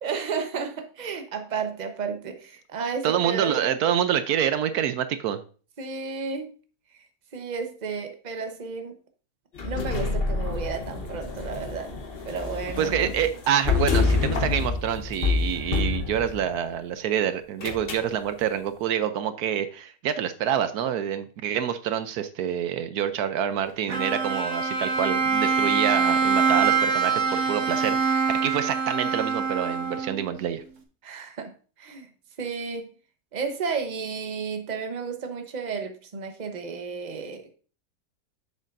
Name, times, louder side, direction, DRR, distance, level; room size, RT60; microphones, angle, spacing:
voice 1, 0.0-3.8 5.8-6.5 7.3-9.0 9.6-11.9 12.3-13.0 31.0-32.1 32.4-32.9 33.3-37.5, right 5 dB, 30° right, 6 dB, 1.0 m, -32 dB
voice 2, 3.0-5.4 12.8-30.6, right 9 dB, 80° right, 11 dB, 1.2 m, -27 dB
sound 1, 9.5-16.6 17.6-18.1, left 4 dB, 40° left, 1.2 m, -27 dB
Bowed string instrument, 23.9-30.3, right 5 dB, 55° right, 1.4 m, -24 dB
9.2 x 7.2 x 2.6 m, 0.38 s
omnidirectional pair, 1.6 m